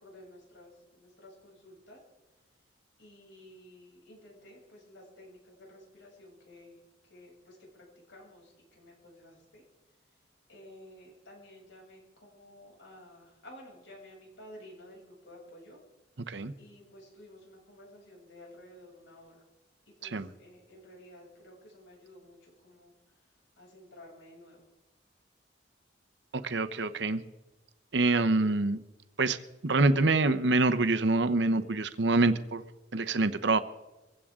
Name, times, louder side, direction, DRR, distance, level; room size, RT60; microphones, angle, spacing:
voice 1, 0.0-2.0 3.0-9.6 10.1-10.2 10.5-15.8 16.6-19.4 19.9-24.6, left 1 dB, 85° left, -2 dB, 7.0 m, -53 dB
voice 2, 26.3-27.2 27.9-28.8 29.2-29.4 29.6-32.6 32.9-33.6, right 3 dB, 70° right, 12 dB, 0.9 m, -26 dB
21.5 x 16.0 x 3.7 m, 1.1 s
head